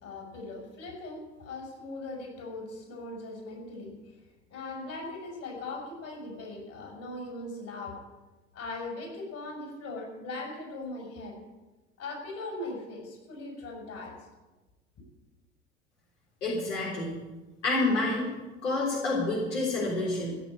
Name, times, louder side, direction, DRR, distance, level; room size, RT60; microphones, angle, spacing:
voice 1, 0.0-3.9 4.5-8.0 8.5-11.4 12.0-14.1, left 2 dB, 45° left, 1 dB, 5.9 m, -39 dB
voice 2, 16.4-17.2 17.6-18.3 18.6-20.4, left 2 dB, 75° left, -3 dB, 3.7 m, -28 dB
15.5 x 7.7 x 8.6 m, 1.2 s
figure-of-eight pair, 70°, 35 cm